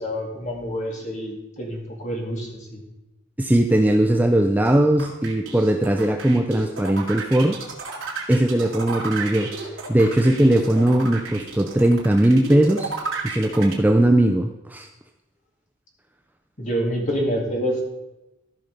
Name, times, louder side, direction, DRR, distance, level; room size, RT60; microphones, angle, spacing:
voice 1, 0.0-2.8 16.6-17.8, equal, 35° left, 0 dB, 2.2 m, -27 dB
voice 2, 3.4-7.6 8.3-12.9 13.2-14.9, right 1 dB, 10° right, 5 dB, 0.4 m, -19 dB
sound 1, 4.6-13.7, right 4 dB, 75° right, 2.4 m, -32 dB
13.5 x 5.5 x 5.2 m, 0.96 s
head